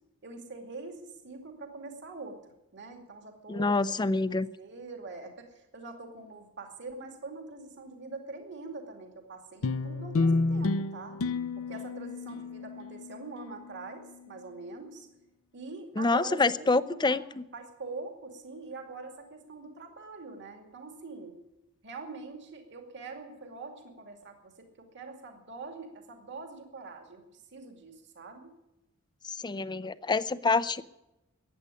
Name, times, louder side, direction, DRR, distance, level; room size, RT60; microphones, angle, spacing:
voice 1, 0.2-2.4 2.7-4.2 4.6-11.2 11.6-15.1 15.5-17.2 17.5-21.4 21.8-28.5, right 3 dB, 55° right, 4 dB, 2.4 m, -44 dB
voice 2, 3.5-4.5 16.0-17.4 29.2-30.8, left 3 dB, 20° left, 16 dB, 0.5 m, -27 dB
sound 1, 9.6-14.3, left 3 dB, 65° left, 0.6 m, -31 dB
15.0 x 9.5 x 9.7 m, 0.95 s
head